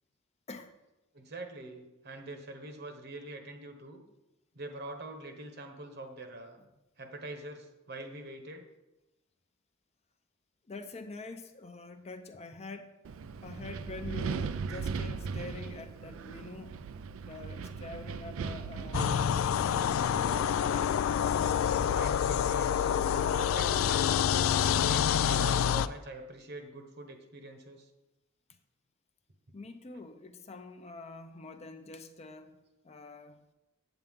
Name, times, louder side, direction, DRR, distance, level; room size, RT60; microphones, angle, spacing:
voice 1, 1.1-4.0 4.5-6.6 7.0-8.7 21.9-23.0 23.3-24.2 24.6-27.9, right 2 dB, 55° right, 1.1 m, -44 dB
voice 2, 10.7-12.9 13.4-16.8 17.2-20.2 29.5-32.6 32.8-33.4, left 3 dB, 30° left, 0.6 m, -45 dB
Wind, 13.0-20.4, right 5 dB, 85° right, 0.4 m, -38 dB
sound 1, 18.9-25.9, left 8 dB, 85° left, 0.3 m, -27 dB
8.1 x 8.0 x 3.6 m
head